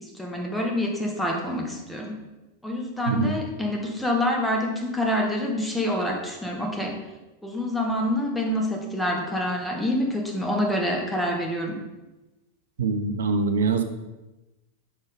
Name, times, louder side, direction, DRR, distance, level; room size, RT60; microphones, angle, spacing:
voice 1, 0.0-2.2 2.6-7.0 7.4-11.8, left 1 dB, 5° left, 0 dB, 1.2 m, -27 dB
voice 2, 12.8-13.8, right 4 dB, 65° right, 7 dB, 0.6 m, -23 dB
5.8 x 4.5 x 4.8 m, 1.0 s
figure-of-eight pair, 90°, 0 cm